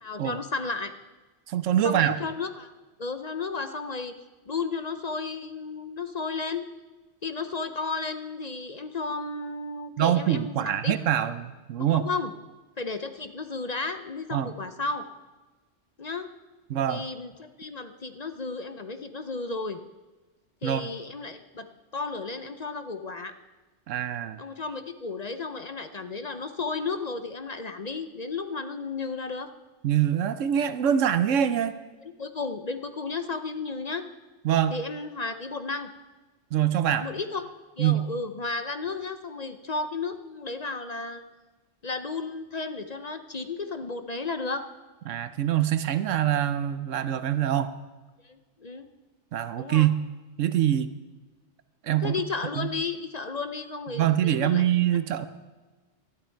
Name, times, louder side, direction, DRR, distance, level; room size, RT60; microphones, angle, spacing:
voice 1, 0.0-0.9 1.8-2.7 3.0-4.1 4.5-6.7 7.2-10.9 11.8-12.3 12.8-15.0 16.0-16.3 16.9-17.3 17.6-19.8 20.6-21.7 21.9-23.3 24.4-29.5 32.2-34.1 34.7-35.9 37.0-37.5 37.8-41.2 41.8-44.7 48.2-48.9 49.6-49.9 52.0-54.7, left 4 dB, 40° left, 9 dB, 0.7 m, -33 dB
voice 2, 1.5-2.2 10.0-12.1 14.3-14.5 16.7-17.0 20.6-20.9 23.9-24.4 29.8-31.7 34.4-34.8 36.5-37.1 37.8-38.0 45.1-47.7 49.3-49.9 50.4-50.9 51.8-52.2 52.5-52.7 53.9-55.3, right 10 dB, 80° right, 12 dB, 1.1 m, -24 dB
20.0 x 12.0 x 4.5 m, 1.2 s
omnidirectional pair, 1.3 m